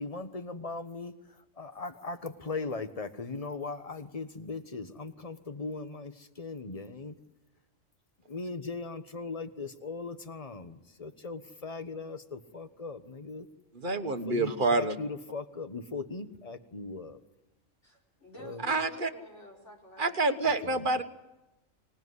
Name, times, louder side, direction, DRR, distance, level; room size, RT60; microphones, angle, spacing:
voice 1, 0.0-7.1 8.3-13.5 14.2-17.2 18.4-18.7 20.6-21.0, left 3 dB, 30° left, 10 dB, 1.3 m, -39 dB
voice 2, 13.7-14.9 18.6-19.1 20.0-21.0, right 3 dB, 40° right, 9 dB, 1.3 m, -27 dB
voice 3, 17.8-20.2, equal, 60° left, -1 dB, 5.6 m, -50 dB
25.0 x 18.5 x 9.7 m, 1.0 s
omnidirectional pair, 1.3 m